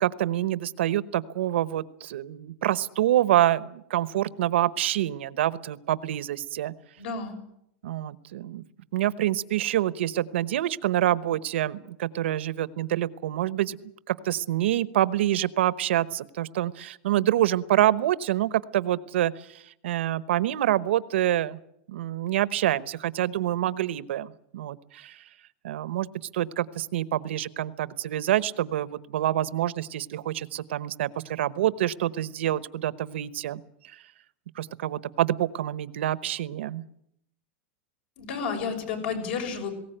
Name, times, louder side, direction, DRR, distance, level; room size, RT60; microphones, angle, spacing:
voice 1, 0.0-6.7 7.8-8.6 8.9-13.8 14.1-19.3 19.8-21.6 21.9-25.2 25.6-26.1 26.3-33.6 34.6-36.8, right 13 dB, 85° right, 16 dB, 1.0 m, -26 dB
voice 2, 7.0-7.4 38.2-39.7, left 5 dB, 60° left, 5 dB, 6.4 m, -31 dB
20.0 x 17.5 x 9.0 m, 0.74 s
supercardioid pair, 165°, 6 cm